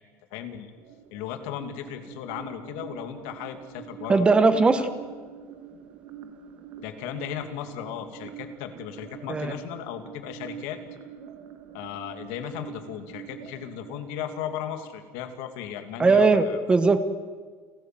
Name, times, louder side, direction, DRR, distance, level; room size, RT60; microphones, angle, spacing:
voice 1, 0.3-0.7 1.1-4.2 4.8-4.9 6.8-10.8 11.7-16.6, left 10 dB, 85° left, 7 dB, 2.3 m, -36 dB
sound 1, 0.8-15.7, right 8 dB, 55° right, 1.8 m, -45 dB
voice 2, 4.1-4.9 9.3-9.5 16.0-17.0, right 3 dB, 15° right, 11 dB, 1.1 m, -19 dB
30.0 x 13.5 x 7.6 m, 1.5 s
cardioid pair, 160°, 7 cm